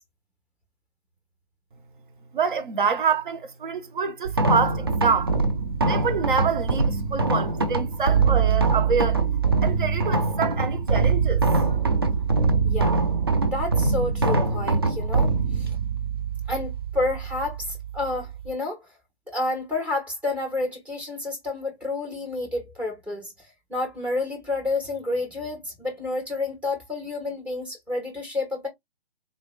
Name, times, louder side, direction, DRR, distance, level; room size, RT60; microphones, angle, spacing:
voice 1, 2.3-5.3 5.8-9.2 9.6-11.4, right 5 dB, 50° right, 1.0 m, -26 dB
sound 1, 4.2-18.5, right 4 dB, 25° right, 0.4 m, -23 dB
voice 2, 12.6-13.0 13.5-15.7 16.5-18.8 19.3-23.3 23.7-28.7, left 2 dB, 5° right, 1.0 m, -29 dB
4.2 x 3.1 x 2.2 m
figure-of-eight pair, 135°, 33 cm